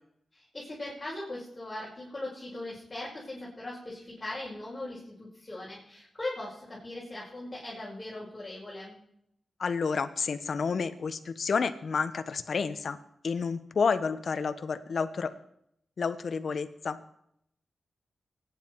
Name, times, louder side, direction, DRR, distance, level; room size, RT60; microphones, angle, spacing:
voice 1, 0.3-9.0, left 2 dB, 25° left, -6 dB, 5.5 m, -39 dB
voice 2, 9.6-13.0 13.2-15.3 16.0-17.0, left 5 dB, 65° left, 11 dB, 1.1 m, -30 dB
23.5 x 10.0 x 4.8 m, 0.75 s
wide cardioid pair, 100°, 0 cm